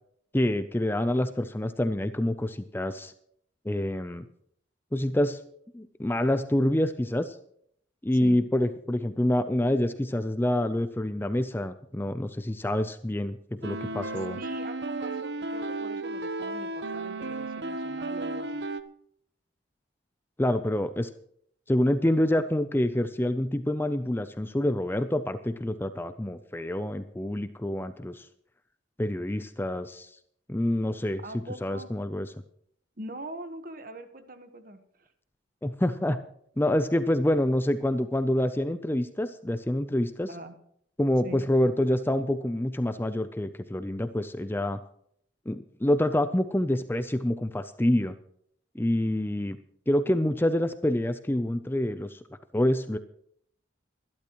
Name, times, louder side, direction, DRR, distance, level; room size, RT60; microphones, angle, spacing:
voice 1, 0.3-3.1 3.7-4.2 4.9-5.4 5.7-7.4 8.0-14.4 20.4-21.1 21.7-28.3 29.0-30.1 30.5-31.2 31.6-32.3 35.6-36.2 36.6-40.3 41.0-44.8 45.5-48.1 48.7-49.6 49.9-52.2 52.5-53.0, left 1 dB, 10° left, 11 dB, 0.5 m, -27 dB
sound 1, 13.6-18.8, right 2 dB, 60° right, 0.9 m, -34 dB
voice 2, 14.4-18.7 31.2-31.9 33.0-35.1 40.3-40.5 41.2-41.4, right 2 dB, 45° right, 8 dB, 1.3 m, -42 dB
22.5 x 12.0 x 3.0 m, 0.67 s
head